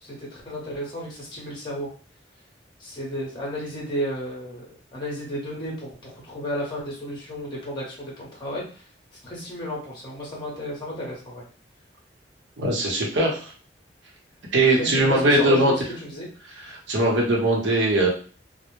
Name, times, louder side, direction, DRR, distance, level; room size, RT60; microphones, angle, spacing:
voice 1, 0.0-1.9 2.8-8.8 9.2-11.4 14.7-16.3, equal, 25° left, -3 dB, 0.8 m, -33 dB
voice 2, 12.6-13.5 14.5-15.7 16.6-18.1, right 1 dB, 75° right, -2 dB, 0.8 m, -20 dB
2.1 x 2.0 x 3.0 m, 0.39 s
head